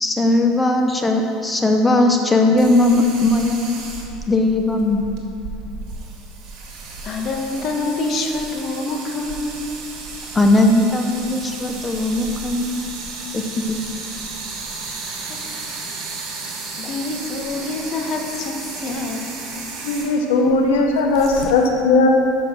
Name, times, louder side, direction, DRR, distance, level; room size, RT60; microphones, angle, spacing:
voice 1, 0.0-3.8 4.3-5.1 10.3-12.9 13.3-13.8, left 2 dB, 15° left, 3 dB, 0.6 m, -18 dB
sound 1, 2.6-21.5, right 4 dB, 60° right, 1.9 m, -34 dB
voice 2, 7.0-9.7 10.2-10.3 15.0-15.6 16.8-19.4 21.2-21.5, left 3 dB, 45° left, 2 dB, 1.1 m, -27 dB
voice 3, 19.8-22.1, left 3 dB, 85° left, 1 dB, 0.7 m, -17 dB
7.1 x 6.1 x 6.1 m, 2.6 s
supercardioid pair, 110°, 0 cm